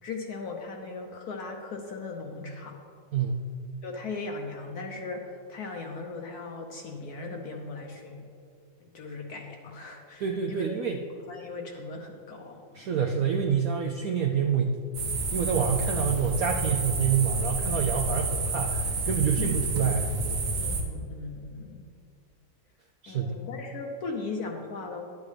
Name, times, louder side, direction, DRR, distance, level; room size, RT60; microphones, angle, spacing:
voice 1, 0.0-2.8 3.8-8.2 8.8-10.6 11.2-12.9 19.4-19.5 20.6-21.8 23.1-25.1, left 3 dB, 65° left, 2 dB, 1.0 m, -38 dB
voice 2, 3.1-3.5 10.2-11.0 12.7-14.8 15.3-20.4 23.0-23.4, right 7 dB, 90° right, 2 dB, 0.7 m, -27 dB
sound 1, 14.9-20.8, right 3 dB, 55° right, 1.4 m, -29 dB
11.5 x 8.3 x 3.3 m, 2.3 s
omnidirectional pair, 2.2 m